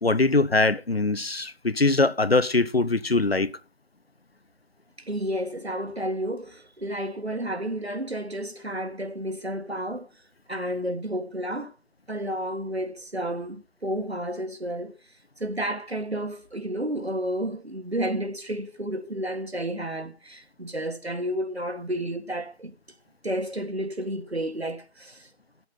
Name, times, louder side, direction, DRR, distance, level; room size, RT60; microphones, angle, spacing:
voice 1, 0.0-3.5, left 3 dB, 70° left, 0.8 m, -22 dB
voice 2, 5.1-10.1 10.5-11.7 12.1-14.9 15.4-22.7 23.2-25.2, right 1 dB, 80° right, 1.7 m, -31 dB
11.5 x 8.1 x 5.6 m
figure-of-eight pair, 180°, 32 cm